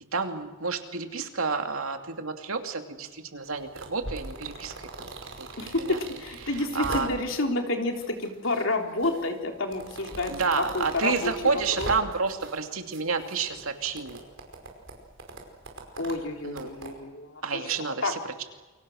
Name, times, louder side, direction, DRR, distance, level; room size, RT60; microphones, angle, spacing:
voice 1, 0.1-6.0 6.6-7.1 10.3-14.2 16.4-16.7 17.4-18.4, right 4 dB, 85° right, 5 dB, 2.7 m, -30 dB
sound 1, 3.4-7.5 7.9-8.6 9.0-12.6 12.9-16.9, right 2 dB, 60° right, 5.2 m, -41 dB
voice 2, 5.6-11.3 11.8-11.9 16.0-17.7 18.0-18.1, left 2 dB, 65° left, 3 dB, 3.6 m, -29 dB
29.5 x 23.0 x 6.5 m, 1.3 s
head